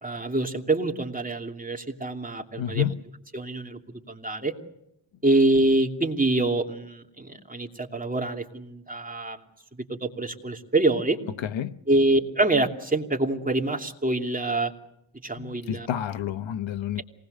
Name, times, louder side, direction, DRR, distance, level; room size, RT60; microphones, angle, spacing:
voice 1, 0.0-2.9 3.3-3.8 4.1-4.5 5.2-9.4 9.9-11.2 11.9-14.7 15.2-15.9, right 2 dB, 20° right, 2.8 m, -25 dB
voice 2, 2.6-3.0 11.4-11.8 15.4-17.0, left 10 dB, 80° left, 1.0 m, -29 dB
27.5 x 19.5 x 6.6 m
cardioid pair, 85°, 45 cm